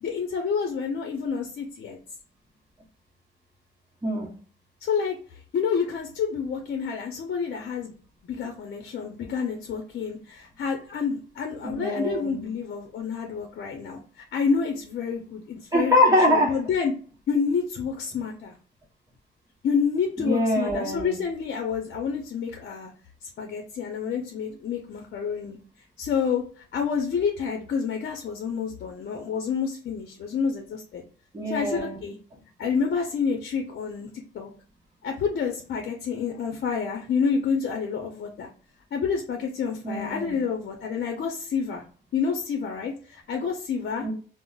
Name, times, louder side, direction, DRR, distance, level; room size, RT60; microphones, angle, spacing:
voice 1, 0.0-2.0 4.8-5.2 5.5-7.9 8.3-14.0 14.3-15.9 16.3-16.9 17.3-18.5 19.6-22.9 23.4-25.6 26.0-26.4 26.7-31.0 31.5-32.2 32.6-34.1 34.3-34.5 35.0-38.5 38.9-41.8 42.1-44.0, left 6 dB, 60° left, 0.6 m, -28 dB
voice 2, 4.0-4.3 11.6-12.5 15.7-16.6 20.2-21.2 31.3-32.0 39.8-40.4 44.0-44.1, left 1 dB, 20° right, 0.8 m, -24 dB
3.7 x 2.0 x 2.3 m
cardioid pair, 90°, 20 cm